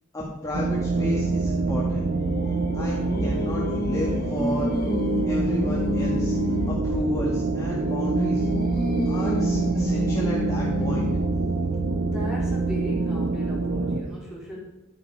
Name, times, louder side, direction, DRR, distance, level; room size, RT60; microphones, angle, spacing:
voice 1, 0.1-2.0 2.7-2.9 3.2-4.7 5.3-6.3 6.7-8.5 9.1-11.1, equal, 15° left, -5 dB, 2.0 m, -31 dB
sound 1, 0.5-14.0, right 3 dB, 70° right, 0.9 m, -26 dB
Singing, 1.5-6.9 7.5-11.4, left 2 dB, 45° left, 1.6 m, -30 dB
voice 2, 12.0-14.6, right 1 dB, 5° right, -6 dB, 4.6 m, -37 dB
12.0 x 9.5 x 4.9 m, 1.0 s
head